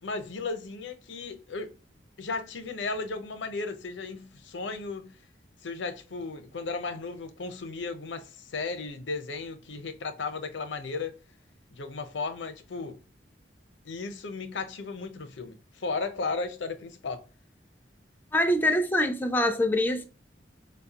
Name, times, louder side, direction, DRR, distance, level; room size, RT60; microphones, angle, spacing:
voice 1, 0.0-1.7 2.2-5.1 5.6-11.1 11.7-13.0 13.8-17.2, left 3 dB, 90° left, 0.7 m, -35 dB
voice 2, 18.3-20.0, left 1 dB, 10° left, 0.4 m, -24 dB
5.2 x 2.3 x 2.8 m
head